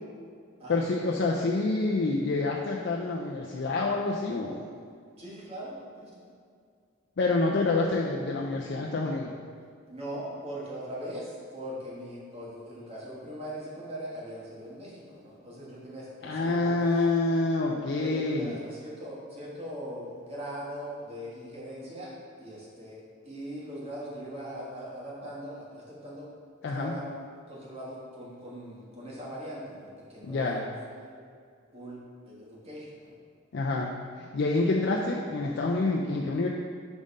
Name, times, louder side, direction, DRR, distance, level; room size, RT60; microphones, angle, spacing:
voice 1, 0.7-4.7 7.2-9.3 16.2-18.5 26.6-26.9 30.2-30.6 33.5-36.5, left 3 dB, 55° left, -2 dB, 0.4 m, -27 dB
voice 2, 5.2-6.3 9.9-17.1 18.0-26.2 26.6-27.1 27.5-30.6 31.0-31.1 31.7-32.0 32.2-33.1, equal, 30° right, -6 dB, 1.4 m, -40 dB
5.1 x 3.6 x 5.3 m, 2.1 s
head